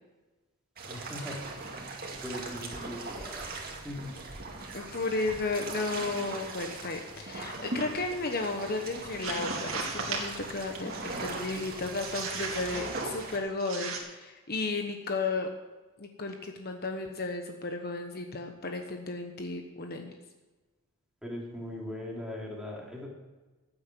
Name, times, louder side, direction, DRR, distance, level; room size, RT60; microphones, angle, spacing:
sound 1, 0.8-13.4, right 3 dB, 45° right, 2.2 m, -40 dB
voice 1, 0.9-1.4 2.2-4.1 21.2-23.1, left 1 dB, 5° right, -3 dB, 3.0 m, -40 dB
voice 2, 4.7-15.5 16.0-20.1, left 3 dB, 45° left, 4 dB, 1.1 m, -34 dB
sound 2, 9.0-10.4 10.9-11.3 12.0-13.3 13.6-14.0, right 4 dB, 70° right, 2.5 m, -37 dB
15.0 x 9.0 x 6.1 m, 1.2 s
head